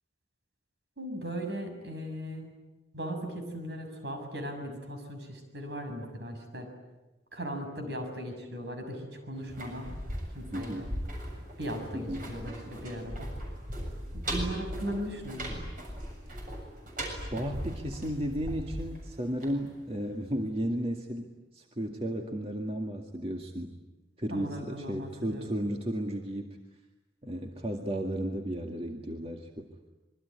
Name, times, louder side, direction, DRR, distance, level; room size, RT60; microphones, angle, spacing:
voice 1, 1.0-2.5 2.9-6.7 7.3-10.0 10.3-10.9 11.6-13.3 14.3-15.7 24.3-25.5, equal, 70° right, 5 dB, 6.8 m, -38 dB
sound 1, 9.4-20.2 20.5-20.6, equal, 50° right, 7.3 m, -38 dB
voice 2, 10.5-10.9 11.9-12.2 17.3-23.7 24.2-26.6 27.2-29.9, equal, 35° right, 2 dB, 2.1 m, -34 dB
26.5 x 23.0 x 9.8 m, 1.0 s
head